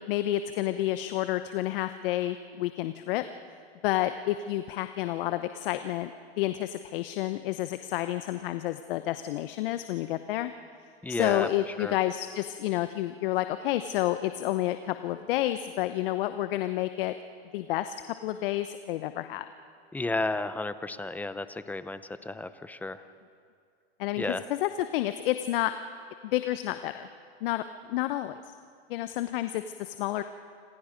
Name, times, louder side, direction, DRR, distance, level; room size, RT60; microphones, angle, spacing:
voice 1, 0.1-3.2 3.8-6.1 6.4-10.5 11.1-17.1 17.5-17.9 18.2-19.5 24.0-25.7 26.2-27.1 27.4-28.4 28.9-30.2, left 14 dB, 55° left, 10 dB, 0.9 m, -30 dB
voice 2, 11.0-12.0 19.9-23.0 24.2-24.5, left 2 dB, 5° left, 12 dB, 0.7 m, -33 dB
28.0 x 27.0 x 5.2 m, 2.2 s
hypercardioid pair, 125°, 33 cm